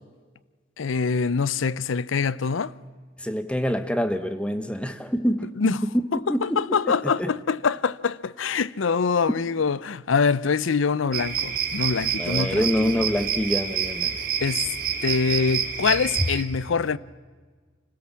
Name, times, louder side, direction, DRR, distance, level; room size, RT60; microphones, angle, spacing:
voice 1, 0.8-2.7 5.6-5.8 6.1-13.1 14.4-14.7 15.0-17.0, left 5 dB, 85° left, 0.6 m, -24 dB
voice 2, 3.2-5.8 6.3-6.8 7.0-7.3 12.2-14.1, equal, 5° left, 1.0 m, -26 dB
sound 1, 11.1-16.4, right 8 dB, 45° right, 2.1 m, -28 dB
25.5 x 16.5 x 7.4 m
head